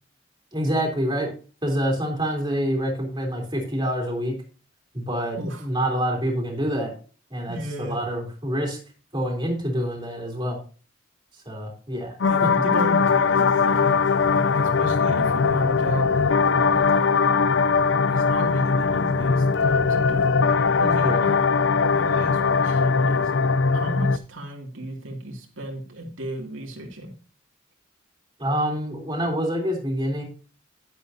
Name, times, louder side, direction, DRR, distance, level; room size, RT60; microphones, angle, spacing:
voice 1, 0.5-1.3 1.6-4.3 4.9-6.9 7.3-8.8 9.1-10.6 11.5-12.1 12.4-12.5 21.0-21.2 28.4-30.2, equal, 20° right, 0 dB, 3.4 m, -26 dB
voice 2, 5.3-5.7 7.5-8.0 12.2-14.0 14.3-17.3 18.1-21.6 21.9-23.3 23.7-27.1, right 1 dB, 80° right, 0 dB, 2.6 m, -35 dB
sound 1, 12.2-24.2, left 5 dB, 65° left, 0.5 m, -20 dB
11.0 x 10.5 x 2.8 m, 0.37 s
head